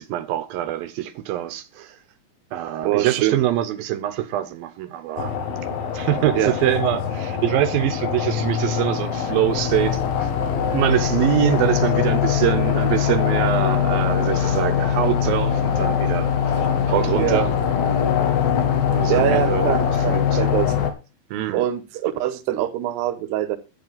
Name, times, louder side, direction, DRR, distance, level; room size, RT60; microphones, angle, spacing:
voice 1, 0.0-2.0 2.5-5.3 5.9-10.3 10.7-17.6 18.9-20.4 21.3-21.7, right 13 dB, 75° right, 2.4 m, -24 dB
voice 2, 2.8-3.4 6.4-6.5 17.2-17.4 19.1-19.8 20.0-20.7 21.5-23.6, right 13 dB, 90° right, 3.1 m, -23 dB
sound 1, 5.2-20.9, left 8 dB, 70° left, 3.3 m, -22 dB
12.0 x 9.7 x 4.0 m
omnidirectional pair, 4.7 m